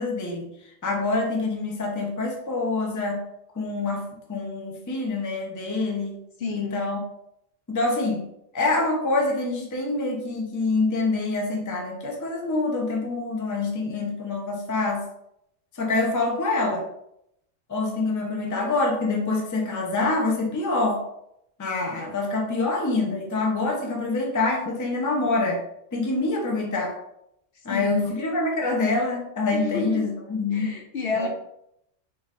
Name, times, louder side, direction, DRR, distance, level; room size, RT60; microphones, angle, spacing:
voice 1, 0.0-3.2 3.5-6.2 6.5-7.0 7.7-8.3 8.5-15.1 15.7-16.9 17.7-21.0 21.6-25.6 25.9-27.0 27.6-30.7 31.1-31.3, left 3 dB, 20° left, 0 dB, 0.5 m, -26 dB
voice 2, 6.4-6.8 27.7-28.1 29.5-30.1 30.5-31.3, left 3 dB, 60° left, 2 dB, 0.7 m, -30 dB
4.0 x 3.7 x 2.4 m, 0.78 s
omnidirectional pair, 1.2 m